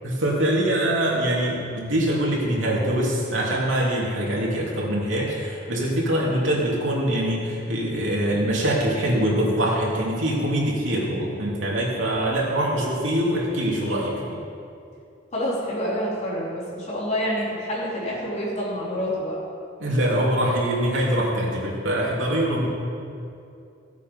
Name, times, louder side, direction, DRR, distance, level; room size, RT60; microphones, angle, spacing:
voice 1, 0.0-14.4 19.8-22.7, right 1 dB, 85° right, -4 dB, 3.0 m, -23 dB
voice 2, 15.3-19.4, equal, 35° left, -6 dB, 3.7 m, -27 dB
15.5 x 8.2 x 5.5 m, 2.6 s
head